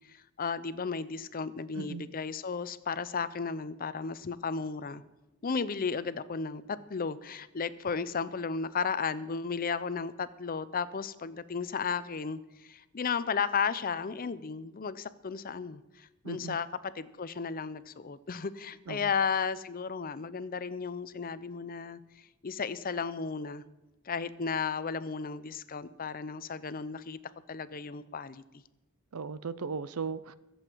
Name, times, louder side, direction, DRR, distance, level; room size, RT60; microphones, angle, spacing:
voice 1, 0.1-5.0 5.4-22.0 22.4-23.6 24.1-27.2 27.5-28.4, left 5 dB, 40° left, 15 dB, 0.6 m, -34 dB
voice 2, 16.2-16.6 18.9-19.1 29.1-30.3, right 5 dB, 85° right, 16 dB, 0.6 m, -37 dB
23.0 x 8.0 x 4.6 m, 1.0 s
head